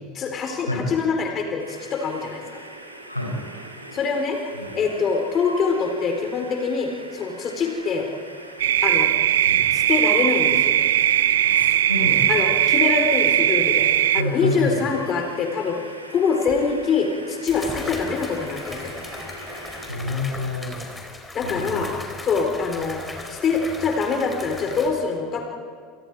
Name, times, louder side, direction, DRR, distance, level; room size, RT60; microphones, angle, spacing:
voice 1, 0.1-2.6 3.9-4.4 4.7-8.1 8.8-9.1 9.7-10.9 12.3-13.9 14.1-15.8 16.1-18.9 21.3-21.9 22.2-23.0 23.3-25.5, left 5 dB, 35° left, 3 dB, 3.9 m, -24 dB
sound 1, 1.6-19.9, right 1 dB, 85° right, 2.9 m, -41 dB
voice 2, 3.1-3.4 4.6-4.7 9.5-9.6 11.4-12.5 14.2-14.8 19.8-20.7 21.4-21.9, left 2 dB, 90° left, 1 dB, 5.3 m, -28 dB
sound 2, 8.6-14.2, right 12 dB, 65° right, 0.5 m, -19 dB
duck in water, 16.5-16.6 17.5-24.9, left 2 dB, 10° left, 5.4 m, -37 dB
29.5 x 28.5 x 4.8 m, 2.2 s
figure-of-eight pair, 75°, 0 cm